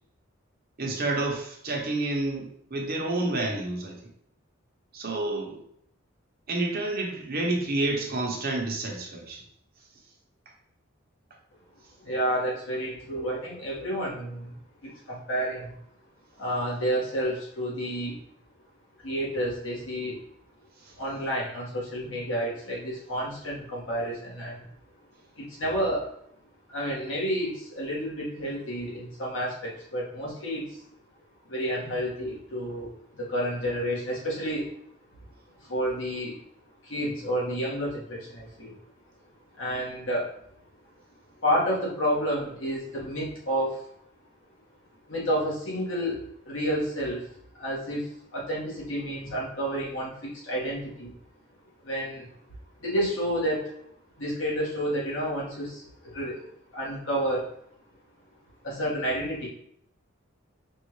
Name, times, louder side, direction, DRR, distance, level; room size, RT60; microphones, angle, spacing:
voice 1, 0.8-4.0 4.9-5.6 6.5-9.4, right 2 dB, 50° right, 0 dB, 0.9 m, -29 dB
voice 2, 12.0-14.6 14.8-15.8 16.4-18.2 19.0-20.2 21.0-24.7 25.4-26.1 26.7-30.8 31.5-34.7 35.6-36.4 36.8-38.8 39.5-40.3 41.4-43.9 45.1-51.1 51.8-52.3 52.8-53.7 54.2-57.5 58.6-59.5, equal, 70° left, -5 dB, 1.6 m, -30 dB
5.3 x 2.5 x 3.1 m, 0.70 s
head